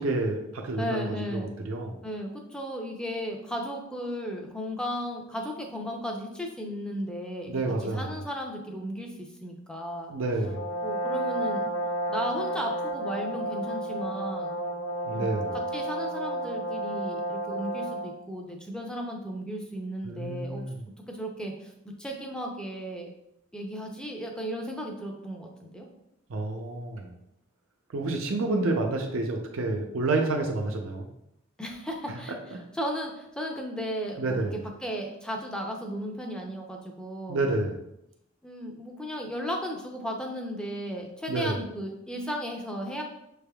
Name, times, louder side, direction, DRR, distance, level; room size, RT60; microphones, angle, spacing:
voice 1, 0.0-2.0 7.5-8.1 10.1-10.6 15.0-15.5 20.0-20.8 26.3-27.2 27.9-31.1 32.1-32.2 32.5-32.6 34.2-34.6 37.3-37.8 41.3-41.6, right 2 dB, 75° right, 2 dB, 0.5 m, -29 dB
voice 2, 0.8-1.5 2.0-7.5 7.9-9.1 9.4-10.1 10.8-11.7 12.1-14.6 15.1-15.3 15.7-20.6 21.1-23.1 23.5-25.9 31.6-32.3 32.7-34.4 34.8-37.5 38.4-43.0, equal, 5° left, 1 dB, 0.5 m, -35 dB
Brass instrument, 10.4-18.2, right 1 dB, 80° left, 0.8 m, -32 dB
6.4 x 3.4 x 2.3 m, 0.82 s
head